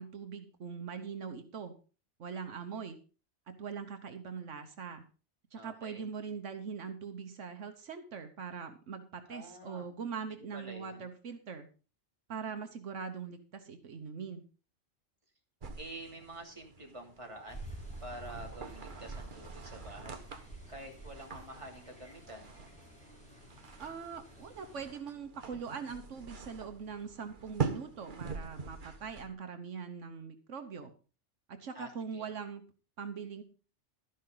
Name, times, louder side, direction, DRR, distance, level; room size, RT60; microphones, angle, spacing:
voice 1, 0.0-1.7 2.2-3.0 3.5-5.0 5.5-11.7 12.3-14.4 23.8-30.9 31.5-32.6 33.0-33.4, right 6 dB, 85° right, 8 dB, 1.4 m, -42 dB
voice 2, 5.5-6.0 9.3-9.9 10.5-11.1 15.8-17.6 18.0-22.5 31.7-32.3, right 1 dB, 25° right, 1 dB, 3.0 m, -48 dB
sound 1, 15.6-29.3, right 5 dB, 45° right, 1.3 m, -44 dB
sound 2, 17.5-24.9, right 1 dB, 5° left, 5.4 m, -49 dB
12.5 x 11.0 x 3.9 m, 0.35 s
omnidirectional pair, 1.2 m